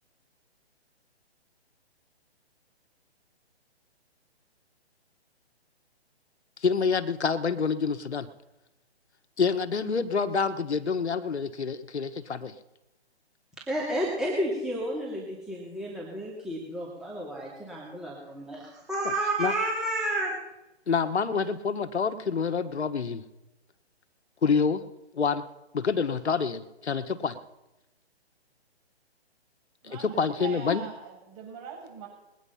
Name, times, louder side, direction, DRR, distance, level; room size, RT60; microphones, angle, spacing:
voice 1, 6.6-8.3 9.4-12.5 19.4-19.5 20.9-23.2 24.4-24.8 25.1-25.4 25.7-27.4 29.9-30.8, left 5 dB, 80° left, 10 dB, 1.4 m, -27 dB
voice 2, 13.7-20.4, right 1 dB, ahead, -5 dB, 2.6 m, -31 dB
voice 3, 29.8-32.1, right 5 dB, 35° right, -1 dB, 7.6 m, -42 dB
21.5 x 9.5 x 5.7 m, 0.97 s
hypercardioid pair, 145°, 33 cm